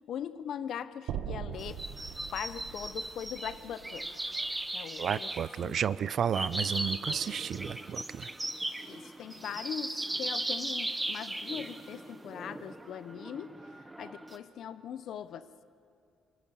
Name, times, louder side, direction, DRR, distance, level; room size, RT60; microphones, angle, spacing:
voice 1, 0.0-1.8 2.3-4.2 4.7-5.9 8.9-13.6 14.0-15.5, left 9 dB, 55° left, 13 dB, 0.8 m, -40 dB
sound 1, 1.1-5.3, right 9 dB, 80° right, 1.1 m, -42 dB
sound 2, 1.6-14.4, right 1 dB, 10° right, 0.9 m, -38 dB
voice 2, 5.0-8.3, right 8 dB, 45° right, 18 dB, 0.5 m, -32 dB
28.0 x 24.5 x 7.1 m, 2.4 s
cardioid pair, 150°, 0 cm